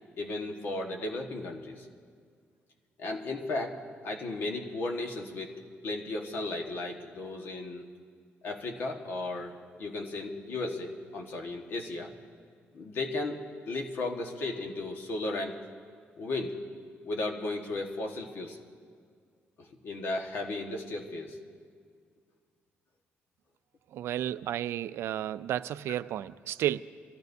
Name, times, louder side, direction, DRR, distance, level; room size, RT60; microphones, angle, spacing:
voice 1, 0.2-1.9 3.0-3.8 4.0-5.5 5.8-7.8 8.4-12.1 12.7-15.6 16.2-16.6 17.0-18.6 19.6-21.4, left 2 dB, 60° left, 2 dB, 1.4 m, -35 dB
voice 2, 23.9-26.8, right 12 dB, 75° right, 14 dB, 0.3 m, -32 dB
24.5 x 15.0 x 2.7 m, 2.1 s
cardioid pair, 155°, 4 cm